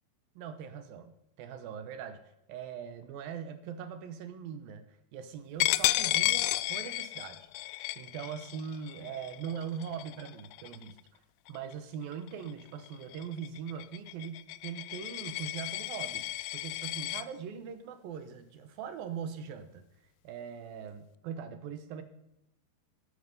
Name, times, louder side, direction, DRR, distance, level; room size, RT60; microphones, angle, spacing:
voice 1, 0.4-1.1 1.4-2.2 2.5-7.5 8.0-11.0 11.5-19.8 20.2-22.0, right 7 dB, 75° right, 10 dB, 2.4 m, -41 dB
Coin (dropping), 5.6-11.0 11.5-11.7 12.1-17.2, left 18 dB, 90° left, 2.9 m, -33 dB
13.0 x 13.0 x 5.4 m, 0.85 s
omnidirectional pair, 5.0 m